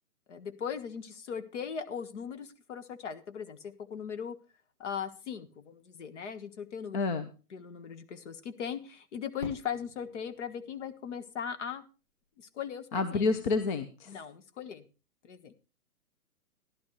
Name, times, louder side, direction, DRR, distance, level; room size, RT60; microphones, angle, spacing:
voice 1, 0.3-4.4 4.8-7.0 7.5-11.8 12.5-13.3 14.1-14.8 15.2-15.5, left 7 dB, 45° left, 12 dB, 1.5 m, -39 dB
voice 2, 6.9-7.3 12.9-14.1, left 4 dB, 30° left, 10 dB, 1.0 m, -29 dB
Fireworks, 9.4-12.3, left 1 dB, 70° left, 7.6 m, -49 dB
14.5 x 11.5 x 3.2 m, 0.33 s
hypercardioid pair, 150°, 48 cm